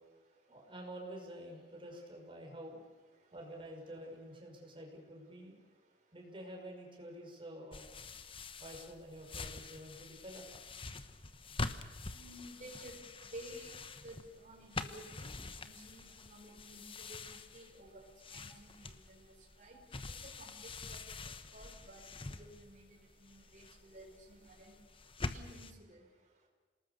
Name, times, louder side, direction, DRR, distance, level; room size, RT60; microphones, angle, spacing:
voice 1, 0.5-2.8 3.3-5.6 6.1-7.8 8.6-10.7, right 1 dB, 30° right, 1 dB, 5.7 m, -49 dB
sound 1, 7.7-25.7, left 3 dB, 30° left, 1.1 m, -46 dB
voice 2, 12.1-13.0 13.3-13.7 14.0-15.3 15.6-19.8 20.2-20.5 20.9-21.0 21.5-22.1 22.4-22.9 23.2-24.7 25.3-26.0, right 1 dB, 45° right, 0 dB, 5.5 m, -53 dB
28.5 x 19.5 x 7.0 m, 1.3 s
head